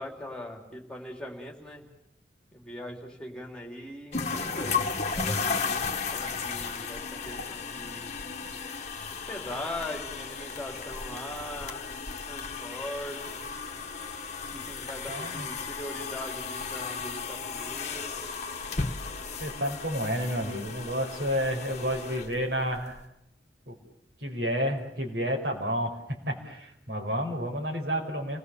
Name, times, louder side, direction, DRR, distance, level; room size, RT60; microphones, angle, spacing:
voice 1, 0.0-1.9 2.5-8.2 9.1-11.8 12.3-13.5 14.5-18.2, left 1 dB, 5° left, 1 dB, 3.6 m, -41 dB
sound 1, 4.1-23.0, left 5 dB, 40° left, 1.5 m, -35 dB
voice 2, 15.1-15.4 19.4-23.0 23.7-23.8 24.2-28.4, equal, 65° right, 1 dB, 4.9 m, -30 dB
30.0 x 19.5 x 7.1 m, 0.85 s
head